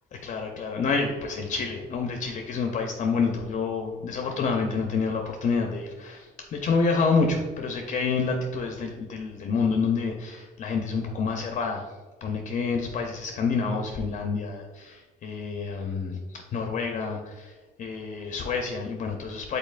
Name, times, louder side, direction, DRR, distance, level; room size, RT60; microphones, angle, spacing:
voice 1, 0.1-11.9 12.2-19.6, left 4 dB, 45° left, 3 dB, 0.5 m, -28 dB
5.3 x 4.0 x 2.4 m, 1.2 s
cardioid pair, 110°, 17 cm